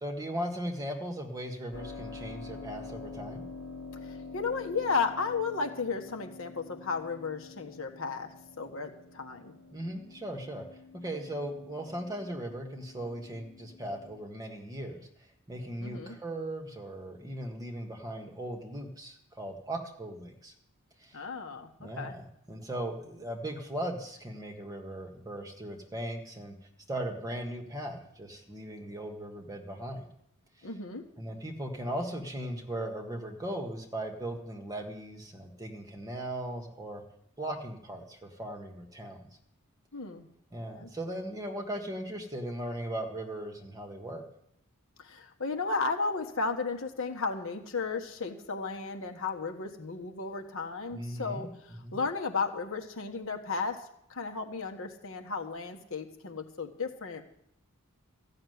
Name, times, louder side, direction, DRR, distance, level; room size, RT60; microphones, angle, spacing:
voice 1, 0.0-3.4 9.7-10.6 10.9-15.1 15.5-20.5 21.0-21.2 21.8-26.5 26.9-30.1 30.6-30.7 31.2-37.0 37.4-39.3 40.5-44.2 50.9-51.5 51.8-52.0, right 1 dB, 15° right, 2 dB, 1.6 m, -38 dB
Keyboard (musical), 1.7-14.2, left 4 dB, 80° left, 4.8 m, -47 dB
voice 2, 4.3-8.3 8.6-9.5 15.8-16.2 21.1-22.1 30.6-31.1 39.9-40.3 40.7-40.9 45.0-53.8 54.1-57.2, left 4 dB, 60° left, 4 dB, 1.4 m, -34 dB
14.5 x 6.6 x 9.4 m, 0.75 s
head